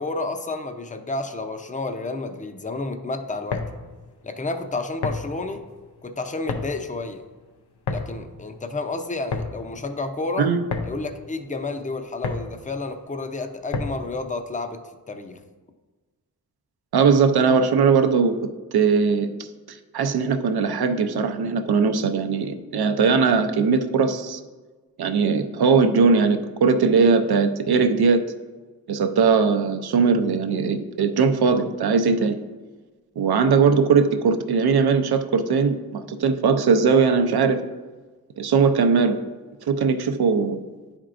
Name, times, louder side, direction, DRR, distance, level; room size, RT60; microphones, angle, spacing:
voice 1, 0.0-3.7 4.2-5.6 6.0-7.2 7.9-10.5 10.8-14.8 15.1-15.4, left 3 dB, 20° left, 7 dB, 0.6 m, -30 dB
sound 1, 3.3-14.2, left 4 dB, 85° left, 0.7 m, -33 dB
voice 2, 16.9-18.4 18.7-19.3 19.7-24.4 25.0-28.3 28.9-32.4 33.2-37.6 38.4-39.2 39.7-40.6, right 5 dB, 75° right, 7 dB, 0.6 m, -20 dB
10.0 x 4.4 x 2.5 m, 1.3 s
cardioid pair, 55°, 38 cm